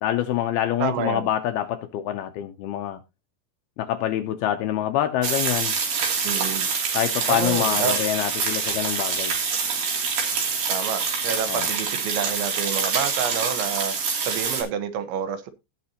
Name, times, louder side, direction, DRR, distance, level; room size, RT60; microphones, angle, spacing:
voice 1, 0.0-3.0 3.8-5.8 6.9-9.4 11.5-11.7, left 12 dB, 80° left, 2.3 m, -26 dB
voice 2, 0.8-1.3 6.2-6.7 7.3-8.0 10.7-13.9 14.3-15.5, right 7 dB, 85° right, 3.6 m, -29 dB
sound 1, 5.2-14.6, right 5 dB, 60° right, 4.6 m, -26 dB
18.0 x 6.0 x 2.8 m
omnidirectional pair, 5.2 m